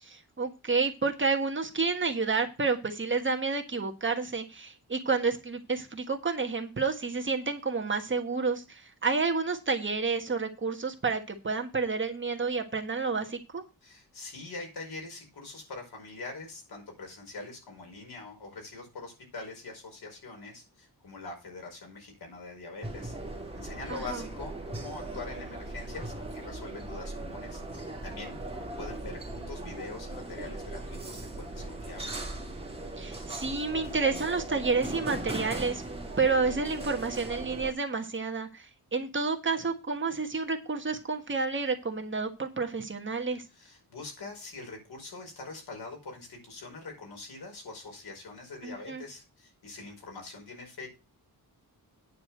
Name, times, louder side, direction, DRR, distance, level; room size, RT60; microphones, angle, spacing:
voice 1, 0.0-13.6 23.9-24.2 33.0-35.8 36.2-43.4 48.6-49.0, right 4 dB, 30° right, 4 dB, 1.5 m, -30 dB
voice 2, 13.8-23.1 23.5-27.6 28.0-28.4 28.8-32.3 43.5-50.9, left 3 dB, 80° left, 2 dB, 5.1 m, -43 dB
sound 1, 22.8-37.7, right 2 dB, 15° right, 2.6 m, -39 dB
9.6 x 4.9 x 7.9 m, 0.28 s
wide cardioid pair, 160°, 38 cm